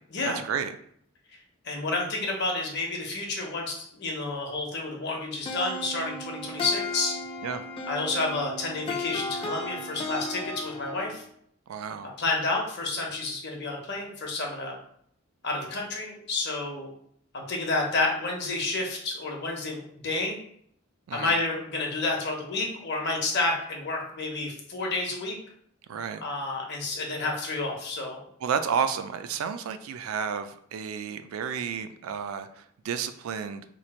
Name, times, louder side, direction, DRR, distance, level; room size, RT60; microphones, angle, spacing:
voice 1, 0.2-0.7 7.4-7.6 11.7-12.1 21.1-21.3 25.9-26.2 28.4-33.7, right 7 dB, 85° right, 10 dB, 0.3 m, -31 dB
voice 2, 1.6-7.2 7.9-11.2 12.0-14.8 15.4-16.9 17.3-20.4 21.1-25.4 26.2-28.2, left 3 dB, 55° left, 0 dB, 0.9 m, -30 dB
sound 1, 5.5-11.2, left 2 dB, 25° left, 0.4 m, -35 dB
3.0 x 2.4 x 4.1 m, 0.66 s
head